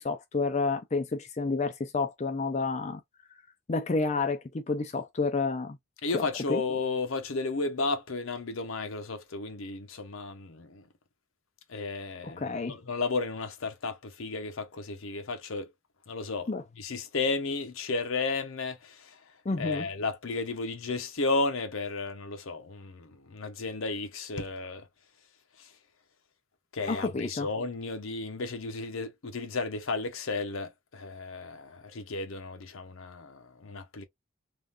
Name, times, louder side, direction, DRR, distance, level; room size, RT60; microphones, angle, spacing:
voice 1, 0.0-3.0 3.7-5.8 6.1-6.6 12.2-12.8 16.5-16.6 19.5-19.9 26.9-27.5, left 3 dB, 30° left, 0.4 m, -30 dB
voice 2, 6.0-10.8 11.7-15.7 16.1-16.5 16.8-19.1 19.6-24.9 26.7-34.1, left 3 dB, 75° left, 0.7 m, -33 dB
3.5 x 2.5 x 2.5 m
head